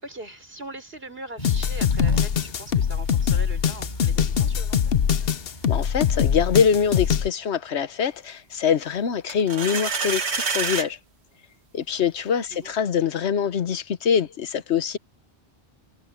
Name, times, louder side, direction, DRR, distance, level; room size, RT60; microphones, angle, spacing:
voice 1, 0.0-5.0 12.5-12.8, right 1 dB, 65° right, 5.0 m, -40 dB
sound 1, 1.4-7.3, left 8 dB, 65° left, 1.0 m, -22 dB
sound 2, 1.4-7.2, left 1 dB, 45° left, 7.5 m, -37 dB
voice 2, 5.7-11.0 11.7-15.0, left 7 dB, 90° left, 1.2 m, -24 dB
sound 3, 9.3-10.9, right 5 dB, 80° right, 1.7 m, -27 dB
omnidirectional pair, 1.1 m